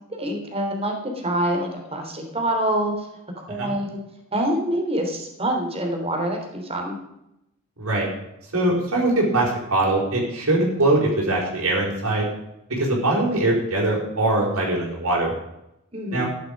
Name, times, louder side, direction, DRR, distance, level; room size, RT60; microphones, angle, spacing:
voice 1, 0.1-3.1 3.4-4.0 4.3-7.0 15.9-16.2, right 1 dB, 30° right, 3 dB, 3.2 m, -26 dB
voice 2, 7.8-8.1 8.5-12.3 12.7-15.3 16.1-16.3, right 2 dB, 75° right, -3 dB, 4.8 m, -22 dB
14.0 x 11.0 x 5.3 m, 0.85 s
head